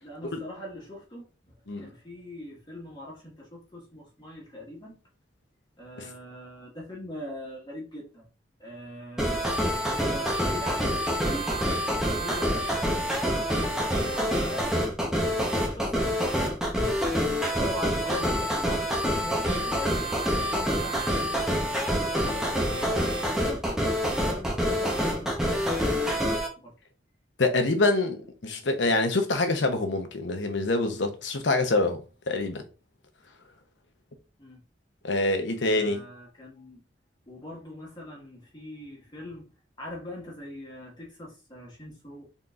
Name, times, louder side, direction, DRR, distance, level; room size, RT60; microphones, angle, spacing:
voice 1, 0.0-1.3 1.7-5.0 5.8-8.3 8.6-11.6 12.0-12.7 13.2-14.8 15.2-16.6 17.6-21.4 21.8-23.6 24.1-26.7 34.4-34.6 35.7-36.8 37.3-39.5 39.8-42.2, left 1 dB, 25° left, 1.5 m, -41 dB
sound 1, 9.2-26.5, equal, 5° right, 0.9 m, -27 dB
voice 2, 27.4-32.6 35.0-36.0, left 2 dB, 85° left, 0.9 m, -26 dB
4.1 x 3.9 x 2.4 m
head